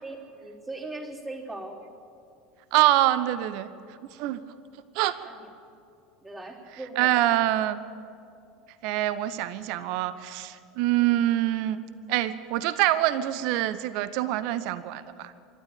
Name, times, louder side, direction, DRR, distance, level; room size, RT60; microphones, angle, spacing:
voice 1, 0.0-1.8 5.2-5.5 6.2-7.3 11.0-11.2, right 2 dB, 20° right, -3 dB, 3.6 m, -39 dB
voice 2, 2.7-4.4 4.9-5.2 7.0-7.8 8.8-11.8 12.1-15.3, right 14 dB, 55° right, 15 dB, 0.9 m, -25 dB
25.0 x 12.5 x 8.7 m, 2.5 s
figure-of-eight pair, 75°, 0 cm